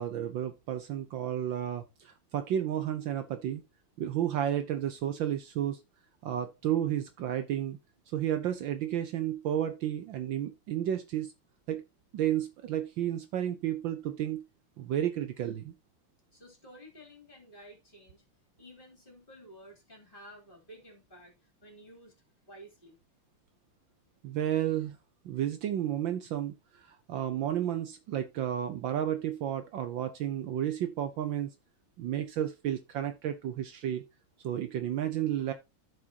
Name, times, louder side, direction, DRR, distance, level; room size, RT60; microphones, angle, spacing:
voice 1, 0.0-3.6 4.0-5.8 6.2-7.8 8.1-11.3 11.7-11.8 12.1-14.4 14.8-15.7 24.2-25.0 25.2-26.5 26.8-31.5 32.0-34.0 34.4-35.5, right 11 dB, 70° right, 1.4 m, -32 dB
voice 2, 16.3-18.2 18.6-21.3 21.6-22.1 22.5-23.0, equal, 25° left, 3.3 m, -52 dB
15.0 x 5.0 x 2.8 m
omnidirectional pair, 2.3 m